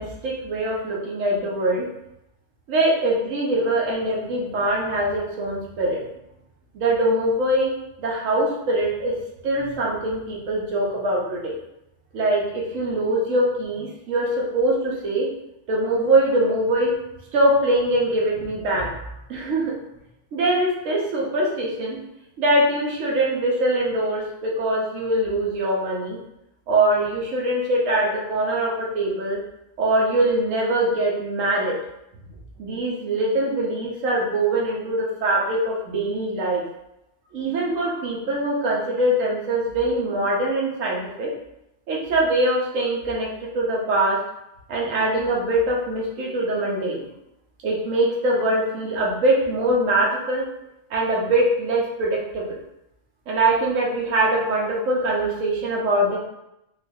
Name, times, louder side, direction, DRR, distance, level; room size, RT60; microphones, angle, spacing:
voice 1, 0.0-1.9 2.7-6.0 6.7-7.7 8.0-9.1 9.4-11.6 12.1-15.3 15.7-16.9 17.3-18.9 19.3-19.7 20.3-22.0 22.4-26.2 26.7-29.4 29.8-31.8 32.6-36.6 37.3-41.3 41.9-44.2 44.7-47.1 47.6-50.4 50.9-52.6 53.3-56.2, right 1 dB, 90° right, -3 dB, 1.1 m, -23 dB
3.8 x 2.3 x 2.6 m, 0.86 s
omnidirectional pair, 1.3 m